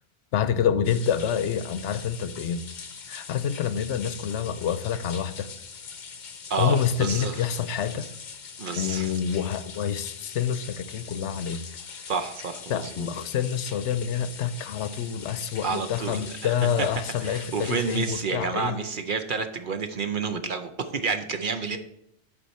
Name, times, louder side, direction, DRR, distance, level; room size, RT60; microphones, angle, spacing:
voice 1, 0.3-2.6 3.1-5.5 6.6-8.1 8.8-11.6 12.7-18.8, left 8 dB, 80° left, 0.9 m, -27 dB
sound 1, 0.8-18.2, left 6 dB, 50° left, 0.7 m, -42 dB
voice 2, 6.5-7.4 8.6-9.2 12.1-13.1 15.6-16.9 17.2-21.8, right 5 dB, 55° right, 0.7 m, -30 dB
10.5 x 4.6 x 4.3 m
omnidirectional pair, 1.2 m